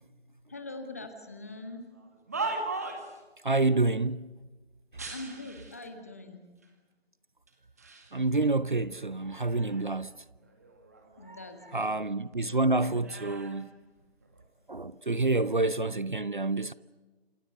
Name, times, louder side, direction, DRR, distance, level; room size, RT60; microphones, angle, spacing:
voice 1, 0.5-1.9 5.1-6.5 11.2-11.9 12.2-12.3 12.7-13.1, left 2 dB, 15° left, 1.6 m, -43 dB
sound 1, 1.9-3.2 4.9-5.9 6.6-6.7 7.5-8.1 8.6-10.0 10.4-12.1 12.3-14.5 15.2-15.5, right 3 dB, 15° right, 2.1 m, -40 dB
voice 2, 3.4-4.3 8.1-10.2 11.3-11.4 11.7-13.7 14.7-16.7, right 2 dB, 50° right, 0.9 m, -28 dB
29.0 x 28.0 x 6.7 m
figure-of-eight pair, 170°, 32 cm